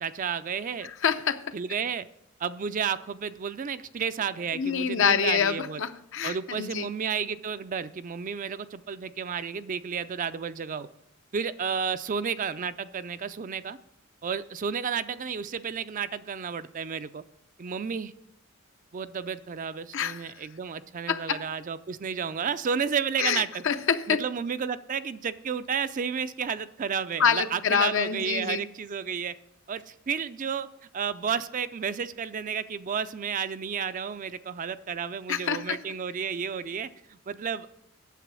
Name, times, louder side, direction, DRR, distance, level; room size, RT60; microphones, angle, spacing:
voice 1, 0.0-0.9 1.5-2.1 2.4-5.8 6.2-10.9 11.3-13.8 14.2-17.2 17.6-18.1 18.9-23.6 24.1-29.3 29.7-30.7 30.9-37.7, right 6 dB, 40° right, 13 dB, 0.4 m, -32 dB
voice 2, 1.0-1.4 4.5-6.9 19.9-20.2 21.1-21.4 23.2-24.2 27.2-28.6 35.3-35.8, left 7 dB, 65° left, 10 dB, 0.6 m, -26 dB
9.1 x 7.4 x 6.2 m, 0.80 s
head